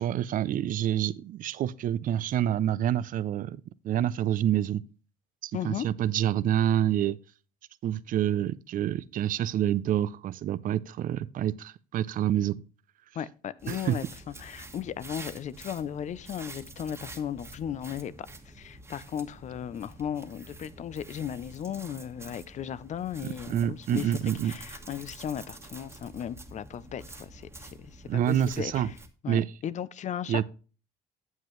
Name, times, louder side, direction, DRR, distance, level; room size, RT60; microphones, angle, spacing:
voice 1, 0.0-4.8 5.4-7.2 7.8-12.6 13.7-14.0 23.5-24.5 28.1-28.9 29.3-29.5 30.3-30.4, right 11 dB, 55° right, 0.5 m, -27 dB
voice 2, 5.5-5.9 13.1-14.0 14.4-18.1 18.4-29.0 29.2-30.4, left 9 dB, 45° left, 0.6 m, -36 dB
sound 1, 13.6-29.1, right 2 dB, 15° right, 1.4 m, -47 dB
9.3 x 7.6 x 3.1 m
cardioid pair, 110°, 17 cm